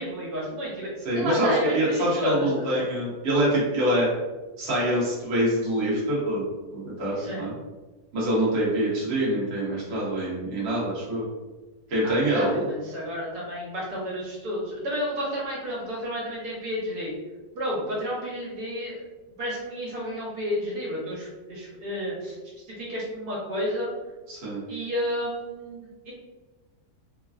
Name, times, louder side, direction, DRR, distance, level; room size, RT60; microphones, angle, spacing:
voice 1, 0.0-2.8 7.2-7.5 12.0-17.1 17.5-19.0 19.4-22.4 22.7-23.9 24.7-26.1, equal, 75° right, -5 dB, 1.4 m, -31 dB
voice 2, 1.0-4.1 4.6-6.4 6.7-7.5 8.1-11.3 11.9-12.6 24.3-24.6, right 1 dB, 45° right, -6 dB, 1.0 m, -25 dB
3.3 x 2.1 x 2.4 m, 1.2 s
omnidirectional pair, 1.8 m